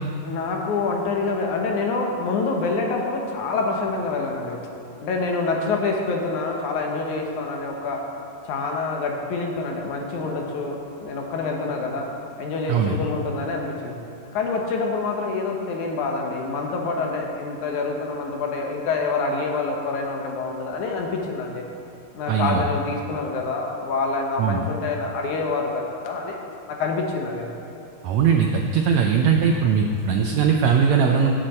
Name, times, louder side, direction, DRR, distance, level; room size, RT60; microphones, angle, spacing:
voice 1, 0.2-4.6 5.0-8.0 8.5-12.1 12.4-13.9 14.3-21.6 22.1-26.4 26.7-27.4, left 3 dB, 70° left, 1 dB, 2.4 m, -26 dB
voice 2, 22.3-22.6 24.4-24.6 28.0-31.3, right 6 dB, 80° right, 3 dB, 1.6 m, -20 dB
17.0 x 8.1 x 4.3 m, 2.9 s
omnidirectional pair, 3.8 m